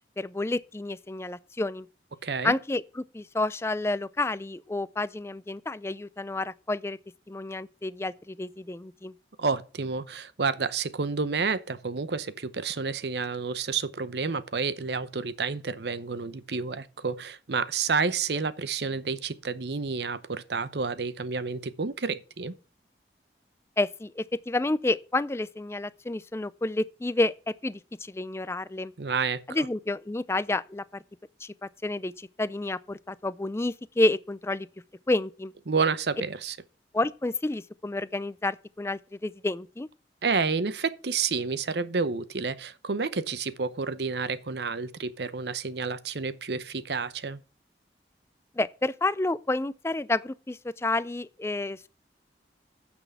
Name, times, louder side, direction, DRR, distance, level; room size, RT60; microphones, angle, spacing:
voice 1, 0.2-1.9 2.4-7.0 7.3-9.1 23.8-27.3 27.6-28.9 29.5-31.0 31.4-34.7 35.1-35.5 36.9-39.9 48.6-51.9, left 2 dB, 15° left, 0.4 m, -30 dB
voice 2, 2.2-2.6 9.4-22.5 29.0-29.7 35.7-36.6 40.2-47.4, right 5 dB, 70° right, 0.8 m, -30 dB
9.2 x 6.2 x 6.7 m
head